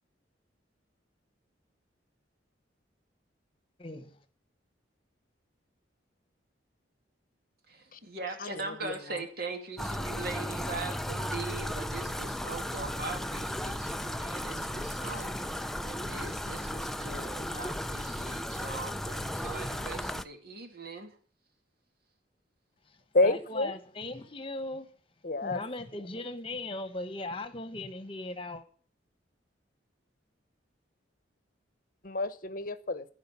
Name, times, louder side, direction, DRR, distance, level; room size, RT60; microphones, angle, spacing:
voice 1, 3.8-4.2 22.8-23.0 23.2-24.9 25.4-28.6, left 2 dB, 30° left, 1.3 m, -38 dB
voice 2, 7.7-21.2, right 3 dB, 55° right, 2.6 m, -41 dB
voice 3, 8.4-9.2 23.1-23.7 25.2-25.6 32.0-33.1, left 2 dB, 45° left, 1.0 m, -29 dB
sound 1, 9.8-20.2, equal, ahead, 0.5 m, -35 dB
15.5 x 5.3 x 8.3 m
head